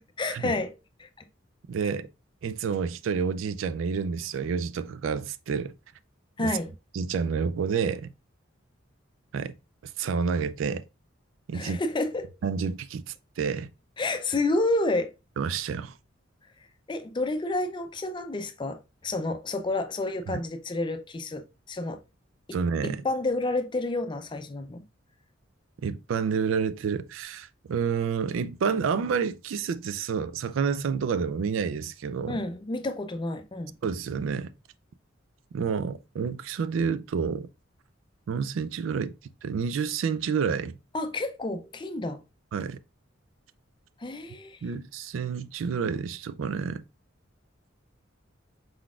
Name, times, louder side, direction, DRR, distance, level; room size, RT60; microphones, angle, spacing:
voice 1, 0.2-1.3 6.4-6.7 11.5-12.4 14.0-15.1 16.9-22.0 22.8-24.8 32.3-33.8 40.9-42.2 44.0-44.6, left 2 dB, 25° left, 0.4 m, -30 dB
voice 2, 1.7-2.1 2.4-5.7 6.4-6.5 6.9-8.1 9.3-9.5 9.8-10.8 11.5-11.8 12.4-13.7 15.4-15.9 20.3-20.4 22.5-23.0 25.8-32.4 33.8-34.5 35.5-37.5 38.3-39.1 39.4-40.8 42.5-42.8 44.6-46.8, right 6 dB, 75° right, 0.3 m, -29 dB
4.6 x 3.9 x 2.4 m
head